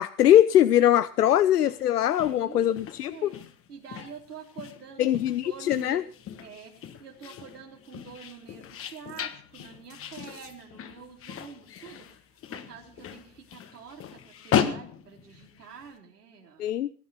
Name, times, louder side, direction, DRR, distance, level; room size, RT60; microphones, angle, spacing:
voice 1, 0.0-3.3 5.0-6.0 16.6-16.9, left 11 dB, 90° left, 15 dB, 0.6 m, -21 dB
sound 1, 1.4-15.9, left 9 dB, 30° left, 1.5 m, -36 dB
voice 2, 1.9-2.7 3.1-3.4 3.7-6.0 6.4-6.7 7.0-12.1 12.5-16.7, right 6 dB, 90° right, 0 dB, 4.0 m, -46 dB
20.5 x 9.4 x 5.6 m, 0.41 s
hypercardioid pair, 100°, 45 cm